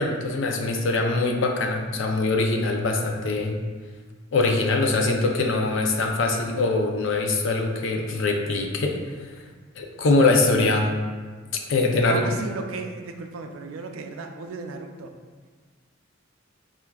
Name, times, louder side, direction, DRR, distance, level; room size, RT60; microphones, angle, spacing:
voice 1, 0.0-3.6 4.3-8.9 9.8-10.9 11.7-12.2, left 3 dB, 70° left, 3 dB, 0.5 m, -23 dB
voice 2, 12.0-15.1, right 4 dB, 85° right, 5 dB, 0.4 m, -34 dB
5.6 x 2.4 x 2.3 m, 1.4 s
head